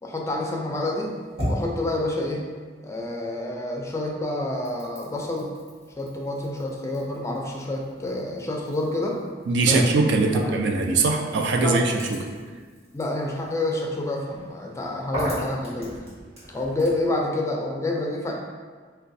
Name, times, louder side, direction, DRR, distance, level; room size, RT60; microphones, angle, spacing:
voice 1, 0.0-1.1 1.5-2.4 2.8-5.5 6.0-9.2 9.7-9.9 10.3-10.5 11.6-11.9 12.9-16.0 16.5-18.3, left 2 dB, 15° left, -1 dB, 0.4 m, -28 dB
sound 1, 0.8-3.5 3.8-17.1, equal, 35° right, 1.3 m, -39 dB
voice 2, 9.5-12.2, right 3 dB, 70° right, 2 dB, 0.4 m, -21 dB
4.8 x 2.2 x 2.6 m, 1.6 s
head